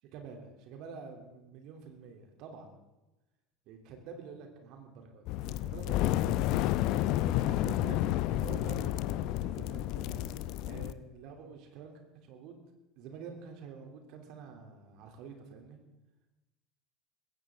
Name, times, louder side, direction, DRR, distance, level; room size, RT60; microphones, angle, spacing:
voice 1, 0.0-2.7 3.7-6.4 6.9-12.6 13.0-15.8, right 5 dB, 55° right, 3 dB, 3.2 m, -48 dB
sound 1, 5.3-10.9, left 14 dB, 55° left, 0.7 m, -30 dB
20.5 x 17.0 x 3.8 m, 1.0 s
figure-of-eight pair, 70°, 0 cm